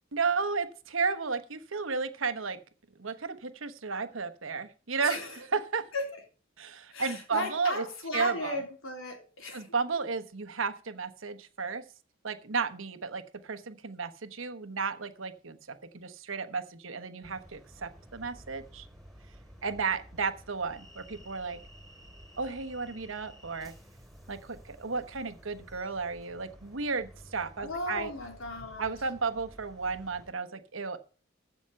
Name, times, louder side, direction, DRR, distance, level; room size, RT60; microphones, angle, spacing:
voice 1, 0.1-2.6 3.0-5.9 6.6-7.8 8.1-8.6 9.5-11.8 12.2-18.9 19.6-21.6 22.4-23.7 24.3-28.1 28.8-31.0, right 5 dB, 75° right, 10 dB, 1.2 m, -33 dB
voice 2, 5.0-5.4 5.9-6.2 6.9-9.7 27.6-29.0, left 2 dB, 80° left, 2 dB, 4.0 m, -36 dB
sound 1, 17.2-30.3, equal, ahead, 3.6 m, -53 dB
15.0 x 6.0 x 5.7 m, 0.37 s
head